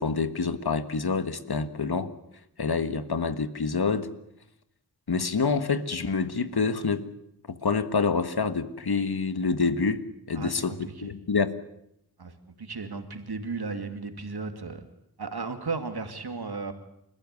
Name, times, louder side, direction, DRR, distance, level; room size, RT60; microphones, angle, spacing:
voice 1, 0.0-2.1 2.6-4.1 5.1-7.1 7.5-11.5, left 4 dB, 75° left, 12 dB, 1.7 m, -27 dB
voice 2, 10.3-11.1 12.2-12.3 12.6-14.8 15.2-16.7, right 4 dB, 75° right, 7 dB, 2.6 m, -35 dB
29.5 x 14.5 x 9.6 m, 0.78 s
wide cardioid pair, 65°, 39 cm